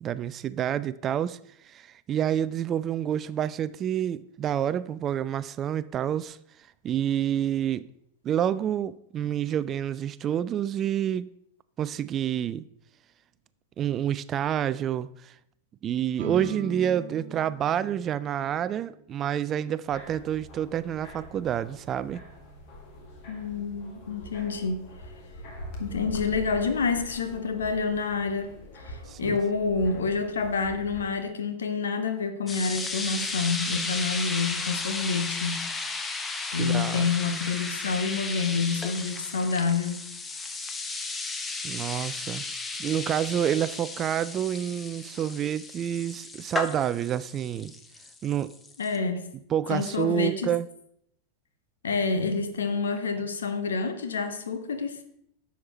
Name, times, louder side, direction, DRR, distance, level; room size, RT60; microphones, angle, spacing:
voice 1, 0.0-1.4 1.6-6.4 6.8-7.9 8.2-11.3 11.8-12.7 13.8-15.3 15.8-22.2 29.1-29.4 36.6-37.0 41.6-42.5 42.8-47.7 48.2-48.5 49.5-50.7, right 10 dB, 30° right, 0.3 m, -28 dB
sound 1, 16.2-23.8, right 3 dB, 55° right, 1.1 m, -44 dB
sound 2, 19.9-31.1, left 1 dB, 45° left, 1.9 m, -44 dB
voice 2, 23.3-24.9 25.8-28.6 28.8-35.7 36.5-40.0 48.8-49.3 49.7-50.5 51.8-55.0, left 4 dB, 70° left, 1.0 m, -28 dB
sound 3, 32.5-49.0, left 3 dB, 15° left, 0.8 m, -34 dB
11.0 x 7.2 x 3.0 m
figure-of-eight pair, 90°, 0 cm